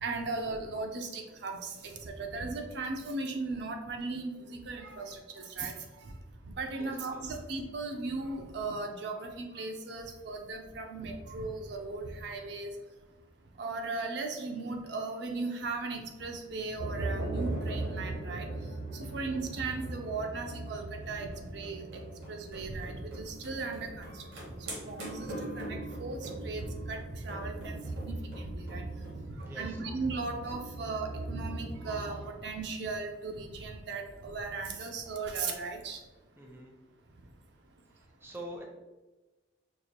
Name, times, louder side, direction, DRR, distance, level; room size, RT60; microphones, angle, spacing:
voice 1, 0.0-5.7 6.6-12.7 13.6-18.5 19.1-21.8 22.3-24.1 24.9-25.3 25.6-27.0 27.2-28.2 28.6-28.9 29.6-36.0, right 3 dB, 60° right, 3 dB, 0.5 m, -37 dB
voice 2, 6.8-7.2 19.0-19.3 29.5-29.8 36.4-36.7 37.9-38.6, right 1 dB, 10° right, 0 dB, 0.5 m, -46 dB
Bowed string instrument, 16.5-20.8, equal, 45° left, 0.5 m, -54 dB
sound 1, 16.8-32.2, right 2 dB, 80° right, 1.3 m, -39 dB
4.7 x 2.4 x 2.8 m, 1.2 s
head